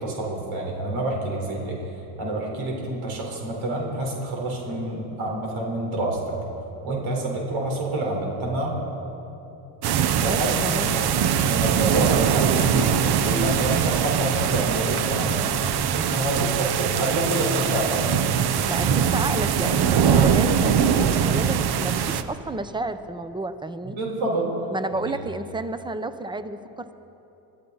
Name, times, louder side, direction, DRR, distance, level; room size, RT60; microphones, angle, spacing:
voice 1, 0.0-1.8 2.2-6.3 6.8-8.8 10.2-11.1 11.4-12.9 13.2-15.4 15.9-18.0 23.8-24.5, right 2 dB, 70° right, -1 dB, 4.2 m, -27 dB
sound 1, 9.8-22.2, right 8 dB, 50° right, 0.9 m, -22 dB
voice 2, 10.3-10.9 18.6-24.0 24.7-26.9, right 2 dB, 10° right, 11 dB, 0.7 m, -31 dB
22.0 x 13.5 x 4.0 m, 3.0 s
cardioid pair, 95°, 48 cm